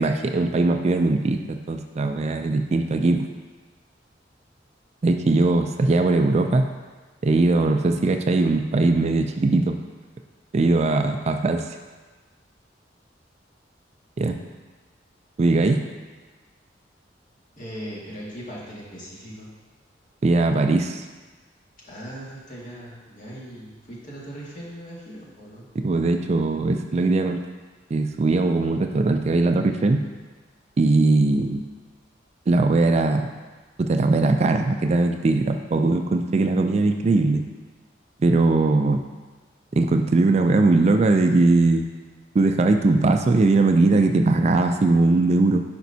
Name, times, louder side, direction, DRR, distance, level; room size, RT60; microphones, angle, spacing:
voice 1, 0.0-3.3 5.0-6.6 7.2-9.8 10.5-11.7 14.2-14.4 15.4-15.8 20.2-21.0 25.8-27.4 27.9-30.0 30.8-31.6 32.5-33.3 33.8-37.4 38.2-39.0 39.7-41.9 42.3-45.6, right 2 dB, 35° right, 6 dB, 0.4 m, -20 dB
voice 2, 17.6-19.5 21.8-25.7, equal, 45° left, -6 dB, 2.0 m, -39 dB
10.5 x 5.1 x 2.7 m, 1.3 s
head